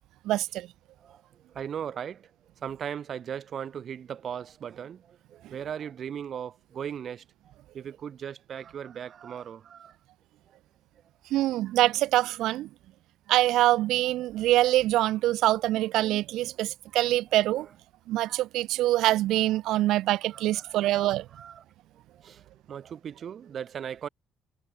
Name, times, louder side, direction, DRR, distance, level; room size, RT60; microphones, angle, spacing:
voice 1, 0.2-0.7 11.3-12.7 13.3-17.7 18.1-21.2, right 15 dB, 85° right, 3.3 m, -24 dB
voice 2, 1.5-2.3 2.6-7.2 7.7-9.9 20.3-21.6 22.1-24.1, right 8 dB, 50° right, 6.3 m, -38 dB
cardioid pair, 115°, 0 cm